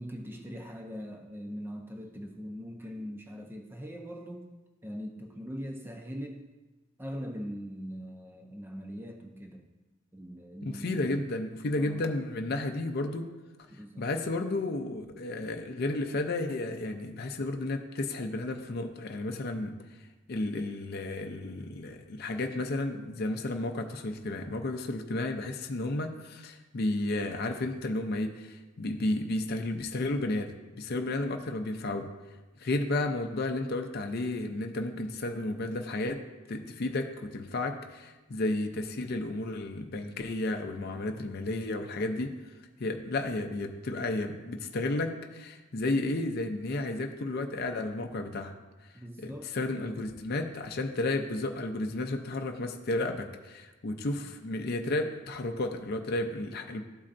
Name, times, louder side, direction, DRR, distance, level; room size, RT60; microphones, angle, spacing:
voice 1, 0.0-4.5 4.8-6.4 7.0-9.7 10.1-11.2 11.8-12.1 13.7-14.1 25.0-25.2 34.8-35.0 41.1-41.3 48.9-50.0 54.1-54.3, equal, 10° right, 3 dB, 0.4 m, -41 dB
voice 2, 10.6-13.3 14.0-19.8 20.3-32.1 32.6-36.2 36.5-42.3 42.8-48.5 49.2-56.8, left 2 dB, 50° left, 5 dB, 0.5 m, -32 dB
12.5 x 4.3 x 2.5 m, 1.2 s
head